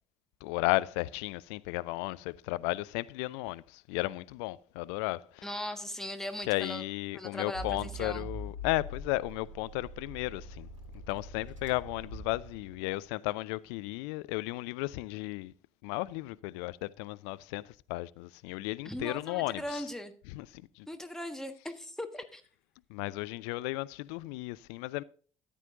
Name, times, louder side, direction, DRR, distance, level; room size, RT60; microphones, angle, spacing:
voice 1, 0.4-5.5 6.4-10.7 11.1-15.5 15.8-19.9 20.3-20.9 22.9-25.0, left 20 dB, 65° left, 0.4 m, -34 dB
voice 2, 5.4-6.8 7.1-8.3 18.8-20.1 20.9-22.4, left 1 dB, 5° left, 1.4 m, -39 dB
Accelerating revving vroom, 7.5-13.0, right 1 dB, 85° right, 1.2 m, -43 dB
13.5 x 9.2 x 2.6 m
figure-of-eight pair, 50°, 16 cm